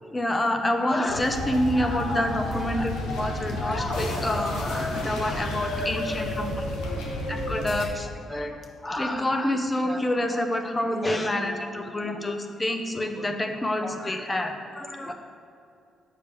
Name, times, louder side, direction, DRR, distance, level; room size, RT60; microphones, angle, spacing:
voice 1, 0.1-6.5 7.3-8.6 8.8-15.1, left 1 dB, 20° left, 5 dB, 0.8 m, -27 dB
sound 1, 1.1-7.9, left 1 dB, 90° left, 1.0 m, -31 dB
voice 2, 5.6-7.8 10.9-12.3, right 2 dB, 40° right, 0 dB, 1.3 m, -42 dB
8.6 x 6.5 x 3.5 m, 2.4 s
cardioid pair, 90°, 0 cm